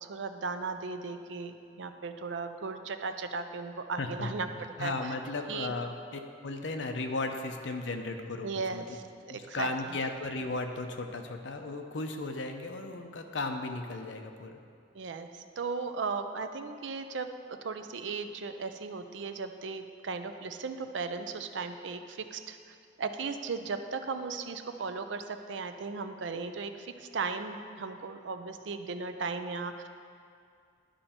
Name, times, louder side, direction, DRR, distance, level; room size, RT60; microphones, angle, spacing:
voice 1, 0.0-4.5 4.8-5.1 5.5-5.7 8.4-9.7 14.9-17.3 17.6-29.9, right 4 dB, 85° right, 8 dB, 0.5 m, -36 dB
voice 2, 4.0-4.3 4.8-8.8 9.3-14.6, left 2 dB, 80° left, 5 dB, 0.7 m, -35 dB
11.5 x 5.5 x 4.3 m, 2.3 s
head